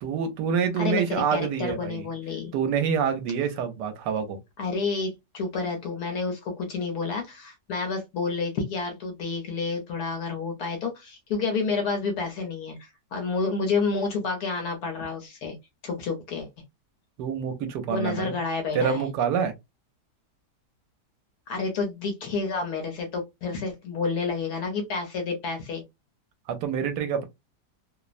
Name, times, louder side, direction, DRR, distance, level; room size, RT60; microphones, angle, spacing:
voice 1, 0.0-2.1 2.5-4.4 17.2-18.4 18.7-19.5 26.5-27.3, right 7 dB, 80° right, 1.2 m, -27 dB
voice 2, 0.8-2.5 4.6-15.5 15.8-16.5 17.9-19.1 21.5-25.8, left 4 dB, 70° left, 1.2 m, -29 dB
3.0 x 2.0 x 2.4 m
omnidirectional pair, 1.8 m